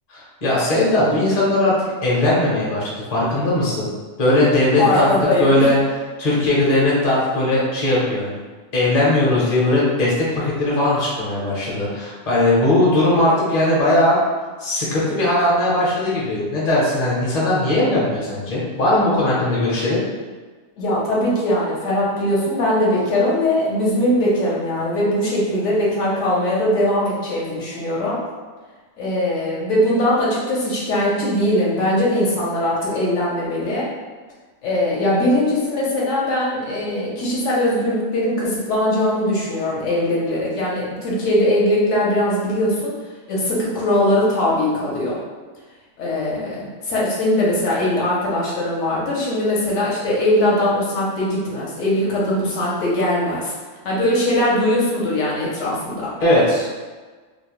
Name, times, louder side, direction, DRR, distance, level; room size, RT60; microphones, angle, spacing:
voice 1, 0.1-1.7 2.0-3.9 4.2-5.1 5.4-5.8 6.2-8.4 8.7-14.2 14.6-20.0 56.2-56.7, left 1 dB, 40° left, -7 dB, 0.7 m, -19 dB
voice 2, 4.8-5.7 20.8-28.2 29.0-33.9 34.6-45.2 46.0-53.5 53.8-56.1, left 1 dB, 70° left, -5 dB, 0.9 m, -20 dB
2.4 x 2.0 x 2.9 m, 1.4 s
omnidirectional pair, 1.4 m